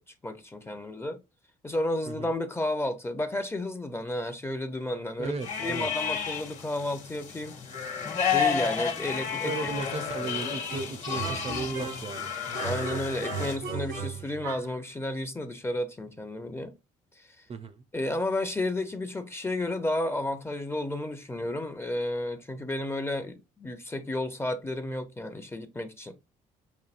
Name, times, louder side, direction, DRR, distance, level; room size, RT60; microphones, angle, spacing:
voice 1, 0.2-1.2 1.6-5.3 5.6-7.6 8.3-9.7 12.6-16.7 17.9-26.1, left 1 dB, 15° left, 0.7 m, -32 dB
voice 2, 5.2-5.9 9.4-12.3 17.5-17.8, right 4 dB, 40° right, 0.6 m, -35 dB
sound 1, 5.4-13.6, left 6 dB, 45° left, 1.1 m, -31 dB
sound 2, 10.7-12.2 12.5-14.8, right 5 dB, 90° right, 1.8 m, -36 dB
5.5 x 2.6 x 2.5 m
supercardioid pair, 70°, 16 cm